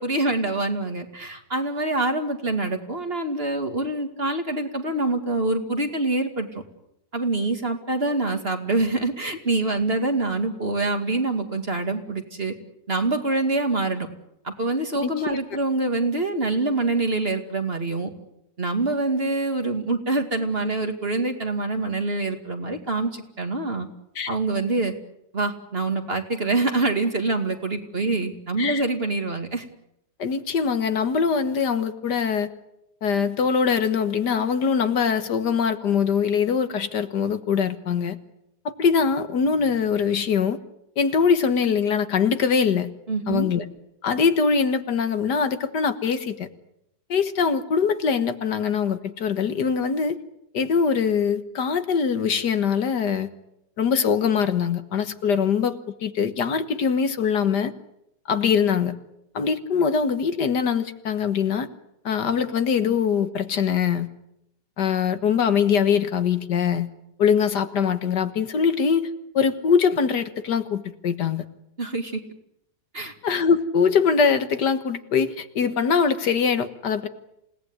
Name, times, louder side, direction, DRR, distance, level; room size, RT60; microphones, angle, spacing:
voice 1, 0.0-6.6 7.1-12.5 12.9-14.1 14.4-18.1 18.6-23.9 24.3-24.9 25.3-29.6 43.1-43.5 71.8-72.2 72.9-73.1, right 2 dB, 35° right, 6 dB, 2.5 m, -25 dB
voice 2, 30.2-32.5 33.0-38.2 38.7-40.6 41.0-42.9 43.3-43.6 44.0-46.5 47.1-50.2 50.5-53.3 53.8-57.7 58.3-59.0 59.3-61.7 62.1-64.1 64.8-66.9 67.2-71.4 73.2-77.1, left 6 dB, 70° left, 10 dB, 1.9 m, -22 dB
28.0 x 18.0 x 9.7 m, 0.82 s
omnidirectional pair, 1.9 m